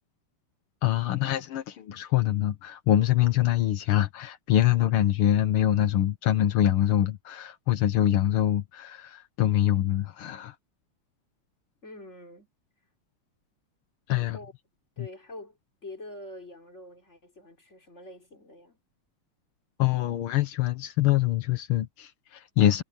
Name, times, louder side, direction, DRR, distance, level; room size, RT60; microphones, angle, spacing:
voice 1, 0.8-10.6 14.1-14.4 19.8-22.8, left 12 dB, 80° left, 1.9 m, -24 dB
voice 2, 11.8-12.5 14.1-14.5 15.0-18.8, left 1 dB, 30° left, 4.9 m, -45 dB
omnidirectional pair, 2.3 m